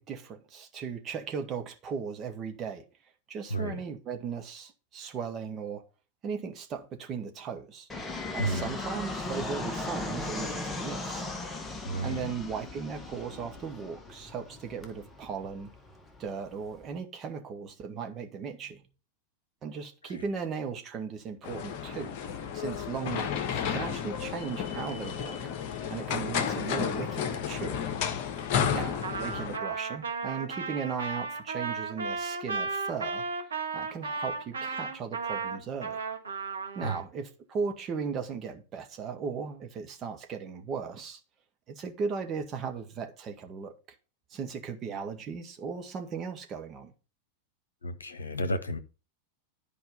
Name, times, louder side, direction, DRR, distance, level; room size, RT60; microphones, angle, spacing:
voice 1, 0.0-2.8 3.3-5.8 6.2-7.9 8.3-11.3 12.0-15.7 16.2-18.8 19.6-22.1 22.5-25.4 25.9-27.8 28.7-33.2 33.7-36.0 36.8-41.2 41.7-43.7 44.3-46.9, right 6 dB, 30° right, 1.8 m, -37 dB
Fixed-wing aircraft airplane, 7.9-16.9, left 2 dB, 15° left, 1.4 m, -38 dB
voice 2, 8.4-8.7 11.9-12.3 28.6-28.8 36.8-37.0 47.8-48.8, right 1 dB, 75° left, 1.0 m, -32 dB
sound 1, 21.4-29.6, left 8 dB, 45° left, 1.2 m, -32 dB
Trumpet, 29.0-37.0, right 4 dB, 70° right, 1.6 m, -34 dB
11.0 x 5.0 x 5.3 m
figure-of-eight pair, 90°, 0 cm